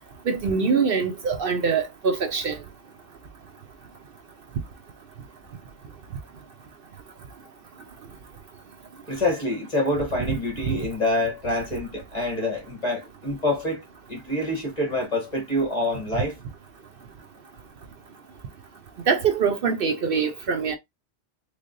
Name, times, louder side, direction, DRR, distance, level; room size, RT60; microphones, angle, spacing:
voice 1, 0.3-2.6 10.7-10.8 19.1-20.8, right 5 dB, 60° right, 0.8 m, -23 dB
voice 2, 9.1-13.8 14.1-16.4, left 1 dB, 35° left, 1.6 m, -26 dB
3.6 x 3.3 x 2.5 m
omnidirectional pair, 1.1 m